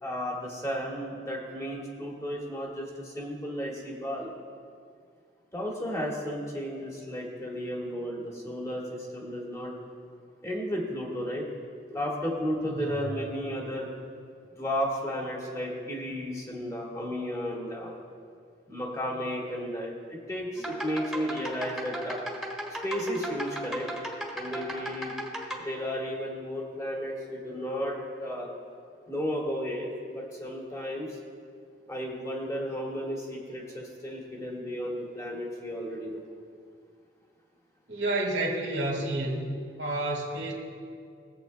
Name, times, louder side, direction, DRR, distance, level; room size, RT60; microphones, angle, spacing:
voice 1, 0.0-4.3 5.5-9.7 10.4-11.4 11.9-13.9 14.6-17.9 18.7-22.2 22.8-23.9 24.3-25.1 25.6-27.9 28.2-28.5 29.1-31.1 31.9-36.2, equal, 20° left, -3 dB, 1.7 m, -33 dB
sound 1, 20.6-25.6, right 1 dB, ahead, 1.5 m, -36 dB
voice 2, 37.9-39.5 39.8-40.5, right 2 dB, 80° right, -2 dB, 1.9 m, -29 dB
20.0 x 8.0 x 2.2 m, 2.2 s
head